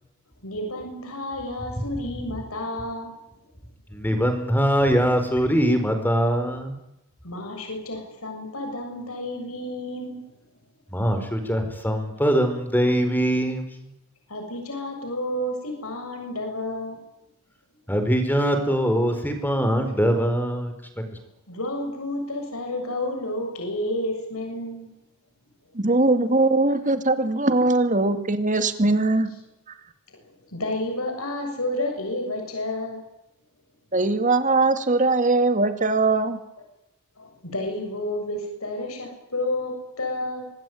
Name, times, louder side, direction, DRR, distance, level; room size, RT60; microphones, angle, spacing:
voice 1, 0.4-3.2 7.2-10.2 14.3-17.0 21.5-24.9 30.1-30.2 30.5-33.0 37.2-40.5, left 1 dB, 75° left, 3 dB, 7.2 m, -30 dB
voice 2, 3.9-6.8 10.9-13.8 17.9-21.0, equal, 10° left, 7 dB, 4.8 m, -22 dB
voice 3, 25.8-29.3 33.9-36.4, right 2 dB, 35° right, 9 dB, 2.5 m, -21 dB
26.0 x 20.0 x 9.6 m, 0.86 s
head